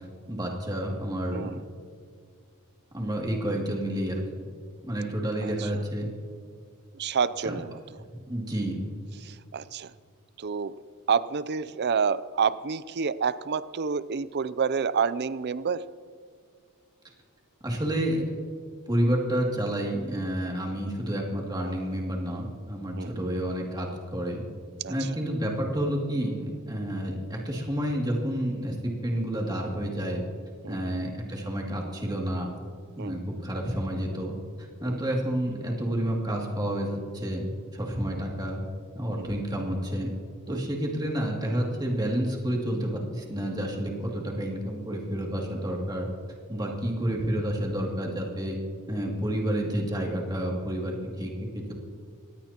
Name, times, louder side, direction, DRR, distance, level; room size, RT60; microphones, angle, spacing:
voice 1, 0.3-1.5 2.9-4.5 4.8-6.1 7.4-7.5 8.1-8.8 17.6-18.2 18.9-24.4 24.9-30.2 30.7-32.6 33.0-38.6 38.9-40.1 40.5-46.1 46.5-48.6 48.9-51.7, right 1 dB, 20° right, -1 dB, 2.6 m, -30 dB
voice 2, 1.3-1.6 5.4-5.7 6.9-7.8 9.2-9.9 10.4-10.8 11.1-15.8 23.0-23.1 24.8-24.9 30.6-31.1 33.0-33.2 34.8-35.0 38.1-38.2 39.2-39.3 40.5-40.6 46.6-46.7, right 6 dB, 50° right, 16 dB, 0.5 m, -29 dB
24.5 x 17.5 x 3.0 m, 2.1 s
head